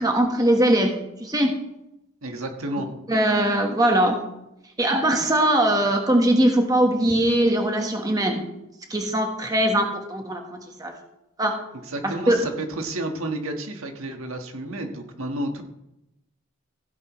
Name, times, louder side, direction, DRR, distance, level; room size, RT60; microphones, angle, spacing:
voice 1, 0.0-1.6 3.1-4.2 4.8-8.4 8.9-10.9 11.4-11.5 12.0-12.4, right 1 dB, 15° right, 3 dB, 1.3 m, -21 dB
voice 2, 2.2-2.9 11.8-15.6, right 1 dB, 75° right, 4 dB, 1.5 m, -31 dB
15.5 x 10.5 x 3.1 m, 0.86 s
head